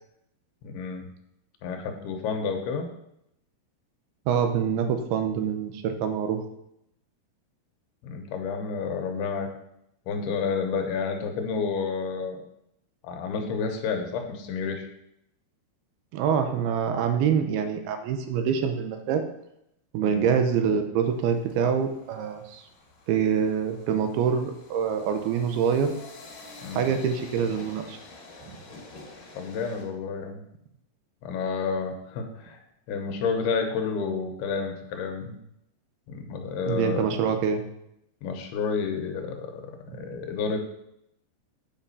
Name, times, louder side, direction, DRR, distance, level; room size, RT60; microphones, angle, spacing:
voice 1, 0.6-1.1 1.6-2.9 8.0-9.5 10.1-12.4 13.0-14.9 20.0-20.3 26.6-26.9 29.3-30.4 31.2-32.6 32.9-35.4 36.1-37.3 38.2-40.7, left 5 dB, 80° left, 4 dB, 2.8 m, -30 dB
voice 2, 4.3-6.4 16.1-19.3 19.9-22.6 23.1-26.0 26.7-28.0 28.5-28.6 36.7-37.6 39.9-40.2, right 7 dB, 80° right, 7 dB, 2.7 m, -25 dB
sound 1, 21.0-29.8, left 3 dB, 55° left, 2.7 m, -48 dB
8.7 x 5.1 x 5.4 m, 0.79 s
omnidirectional pair, 4.7 m